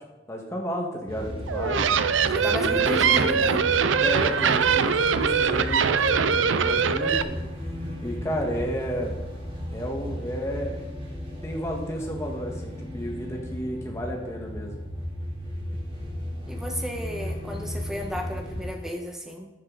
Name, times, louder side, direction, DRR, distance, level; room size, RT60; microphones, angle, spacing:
voice 1, 0.3-1.8 2.4-3.4 4.0-7.4 8.0-9.2 9.7-10.8 11.4-14.7, equal, 15° left, -1 dB, 1.8 m, -32 dB
sound 1, 1.1-18.7, left 1 dB, 30° right, 3.6 m, -35 dB
sound 2, 1.5-7.2, right 6 dB, 75° right, 0.6 m, -22 dB
voice 2, 2.3-3.6 16.5-19.5, equal, 5° right, 1 dB, 1.4 m, -33 dB
13.5 x 7.8 x 4.1 m, 1.1 s
head